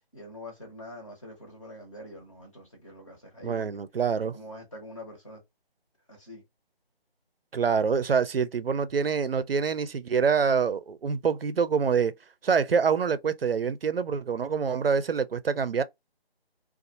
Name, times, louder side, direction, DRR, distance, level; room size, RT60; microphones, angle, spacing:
voice 1, 0.1-3.7 4.2-5.4 6.1-6.4, left 1 dB, 30° left, 1.3 m, -45 dB
voice 2, 3.4-4.3 7.5-12.1 12.4-15.8, right 6 dB, 65° right, 0.4 m, -26 dB
2.6 x 2.4 x 2.5 m
figure-of-eight pair, 165°, 31 cm